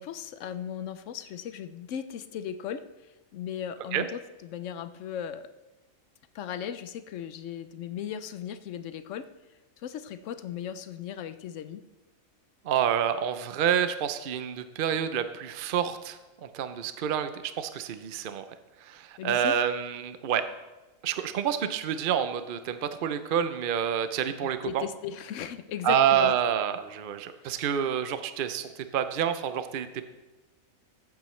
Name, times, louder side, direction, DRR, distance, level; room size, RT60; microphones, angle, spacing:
voice 1, 0.0-2.8 3.3-5.5 6.3-9.3 9.8-11.8 19.2-19.6 24.4-26.3 27.4-27.6, left 9 dB, 70° left, 12 dB, 0.9 m, -37 dB
voice 2, 12.6-18.4 18.8-20.4 21.0-24.8 25.8-30.1, right 8 dB, 55° right, 10 dB, 0.6 m, -28 dB
14.5 x 8.4 x 3.2 m, 1.1 s
omnidirectional pair, 1.5 m